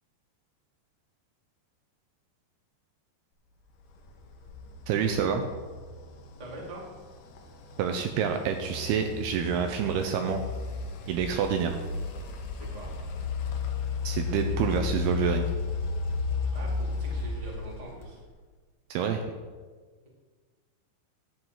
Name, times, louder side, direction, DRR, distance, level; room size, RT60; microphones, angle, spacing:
sound 1, 3.8-18.3, left 5 dB, 75° left, 2.0 m, -34 dB
voice 1, 4.9-5.4 7.8-10.4 11.1-11.8 14.0-15.5 18.9-19.2, right 7 dB, 85° right, 6 dB, 2.3 m, -27 dB
voice 2, 6.4-6.9 12.5-12.9 16.5-18.2, right 1 dB, 45° right, -3 dB, 0.5 m, -43 dB
11.5 x 8.1 x 4.5 m, 1.5 s
omnidirectional pair, 5.0 m